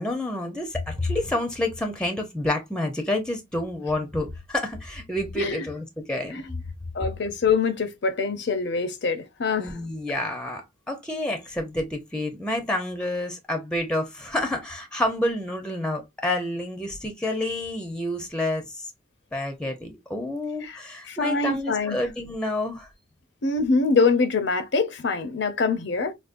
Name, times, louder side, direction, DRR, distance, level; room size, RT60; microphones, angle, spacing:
voice 1, 0.0-6.3 9.6-10.6 10.9-18.7 19.3-22.9, left 1 dB, 5° left, 0.6 m, -28 dB
voice 2, 6.9-9.7 20.6-20.8 21.1-22.0 23.4-26.1, left 4 dB, 65° left, 0.6 m, -24 dB
5.1 x 2.0 x 2.5 m
head